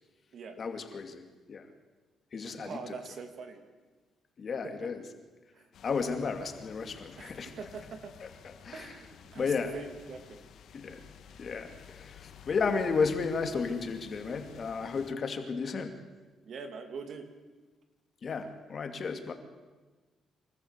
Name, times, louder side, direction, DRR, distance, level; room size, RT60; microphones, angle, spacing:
voice 1, 0.6-1.7 2.3-2.9 4.4-5.1 5.8-7.5 8.2-9.0 9.3-9.8 10.7-11.0 11.4-16.0 18.2-19.3, left 5 dB, 45° left, 6 dB, 2.6 m, -33 dB
voice 2, 2.4-3.6 4.6-4.7 5.5-5.7 7.2-7.3 7.6-8.1 8.7-10.4 16.4-17.3, right 5 dB, 60° right, 7 dB, 2.8 m, -43 dB
sound 1, 5.7-15.1, left 8 dB, 70° left, 1.6 m, -53 dB
25.5 x 14.0 x 8.3 m, 1.3 s
cardioid pair, 90°, 0 cm